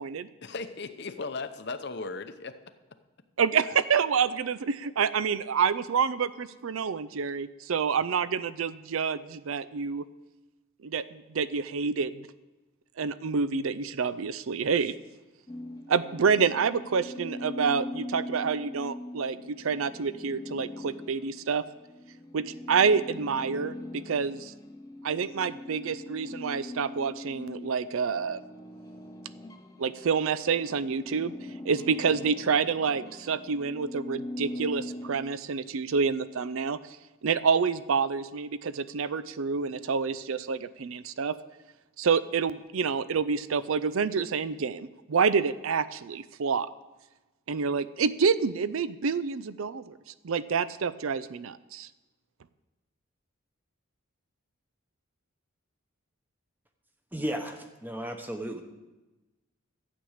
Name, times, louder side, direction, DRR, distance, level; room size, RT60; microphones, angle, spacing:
voice 1, 0.4-2.6, left 3 dB, 50° left, 9 dB, 0.7 m, -36 dB
voice 2, 3.4-10.0 10.8-12.2 13.0-14.9 15.9-21.6 22.3-24.5 25.0-28.4 29.8-31.3 31.6-36.8 37.2-41.4 42.0-46.7 47.5-49.9 50.2-51.9, right 5 dB, 75° right, 15 dB, 0.5 m, -28 dB
Desert Gravy, 15.5-30.1 30.4-35.2, left 1 dB, 15° left, 0.6 m, -41 dB
voice 3, 57.1-58.6, equal, 10° right, 5 dB, 1.0 m, -34 dB
12.5 x 8.6 x 6.5 m, 1.1 s
head